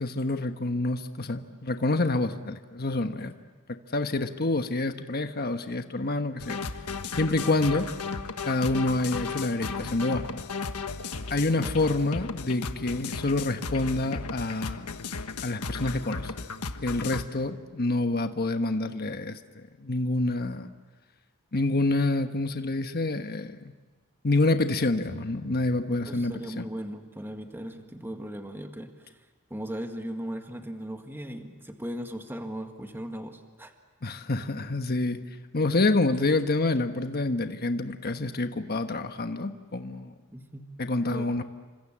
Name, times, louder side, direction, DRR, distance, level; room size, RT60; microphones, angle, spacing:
voice 1, 0.0-3.3 3.7-6.6 7.2-7.9 8.4-10.4 11.3-14.9 15.4-16.3 16.8-20.7 21.5-23.7 24.2-26.7 34.0-35.2 35.5-40.1 40.8-41.4, left 2 dB, 45° left, 7 dB, 1.3 m, -27 dB
sound 1, 6.4-17.2, left 4 dB, 90° left, 1.4 m, -35 dB
voice 2, 26.0-29.2 29.5-33.7 40.3-40.7 41.1-41.3, equal, 10° right, 5 dB, 1.8 m, -38 dB
29.0 x 26.0 x 7.5 m, 1.3 s
head